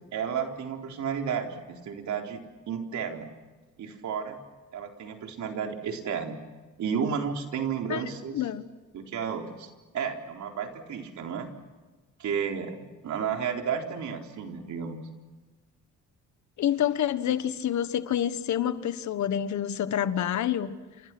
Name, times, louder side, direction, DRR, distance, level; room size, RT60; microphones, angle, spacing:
voice 1, 0.1-2.4 2.7-3.3 3.8-4.4 4.7-6.4 6.8-8.4 8.9-11.5 12.2-15.0, right 7 dB, 70° right, 3 dB, 4.1 m, -32 dB
voice 2, 16.6-20.7, left 10 dB, 70° left, 12 dB, 1.5 m, -27 dB
29.5 x 27.5 x 6.2 m, 1.3 s
cardioid pair, 90°, 30 cm